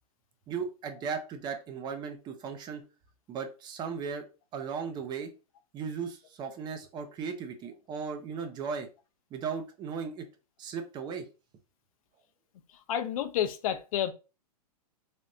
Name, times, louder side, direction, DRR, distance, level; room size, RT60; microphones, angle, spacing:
voice 1, 0.5-2.8 3.3-4.3 4.5-5.3 5.7-8.9 9.3-10.3 10.6-11.3, right 6 dB, 20° right, 0.5 m, -36 dB
voice 2, 12.9-14.1, left 10 dB, 60° left, 0.5 m, -29 dB
3.4 x 2.6 x 2.6 m
hypercardioid pair, 130°, 20 cm